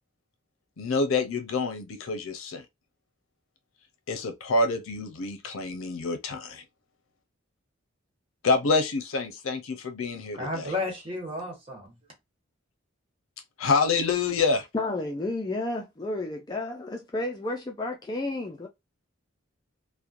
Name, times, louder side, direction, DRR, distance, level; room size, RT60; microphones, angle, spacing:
voice 1, 0.8-2.6 4.1-6.6 8.4-10.6 13.6-14.6, left 3 dB, 80° left, 0.5 m, -27 dB
voice 2, 10.3-11.9, left 2 dB, 25° right, 1.3 m, -32 dB
voice 3, 14.7-18.7, left 2 dB, 20° left, 0.3 m, -31 dB
3.0 x 2.1 x 2.4 m
head